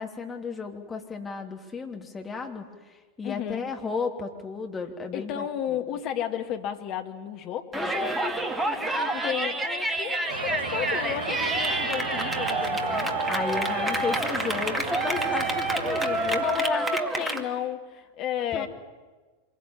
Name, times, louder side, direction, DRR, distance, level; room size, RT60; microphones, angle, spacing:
voice 1, 0.0-5.5 7.7-8.4 8.6-9.4 13.3-16.9 17.3-17.5 18.5-18.7, left 4 dB, 15° left, 3 dB, 3.1 m, -34 dB
voice 2, 3.2-3.6 5.1-7.8 9.1-13.1 15.6-18.7, left 10 dB, 40° left, 6 dB, 2.3 m, -33 dB
Yell, 7.7-17.4, right 2 dB, 10° right, 2.3 m, -28 dB
sound 1, 10.3-16.4, right 3 dB, 60° right, 4.8 m, -34 dB
26.5 x 22.0 x 9.0 m, 1.3 s
figure-of-eight pair, 90°, 0 cm